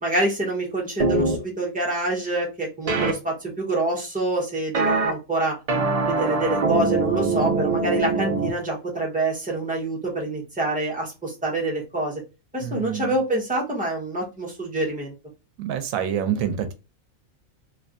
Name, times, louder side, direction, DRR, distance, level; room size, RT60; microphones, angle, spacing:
voice 1, 0.0-5.6 6.1-12.2 12.5-15.1, right 2 dB, 5° right, -3 dB, 1.0 m, -26 dB
sound 1, 1.0-1.4 2.9-3.1 4.7-5.1 5.7-8.5, right 3 dB, 55° right, 0.4 m, -22 dB
voice 2, 12.6-13.2 15.6-16.7, right 8 dB, 90° right, 9 dB, 1.0 m, -27 dB
3.2 x 2.9 x 2.5 m, 0.28 s
omnidirectional pair, 1.4 m